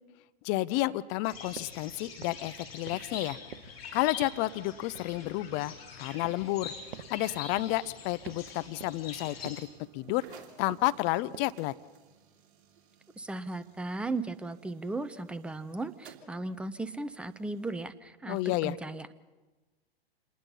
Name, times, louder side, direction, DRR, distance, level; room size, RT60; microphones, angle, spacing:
voice 1, 0.4-3.4 3.9-6.7 7.1-9.7 9.9-11.7 18.3-18.8, left 17 dB, 30° left, 15 dB, 0.7 m, -31 dB
sound 1, 1.2-9.6, left 5 dB, 65° left, 4.2 m, -45 dB
sound 2, 1.6-1.8 2.2-2.5 2.9-3.2 3.5-3.8 4.2-4.5 4.8-5.8 6.2-6.6 6.9-7.2 7.6-7.9 8.3-8.5 8.8-9.2 9.5-9.7 10.1-10.4 10.7-11.0 11.3-11.6, right 9 dB, 65° right, 0.9 m, -48 dB
sound 3, 6.4-17.9, right 7 dB, 50° right, 2.8 m, -59 dB
voice 2, 13.2-19.1, right 2 dB, 5° right, 13 dB, 0.6 m, -36 dB
27.0 x 20.0 x 5.6 m, 1.2 s
figure-of-eight pair, 105°, 32 cm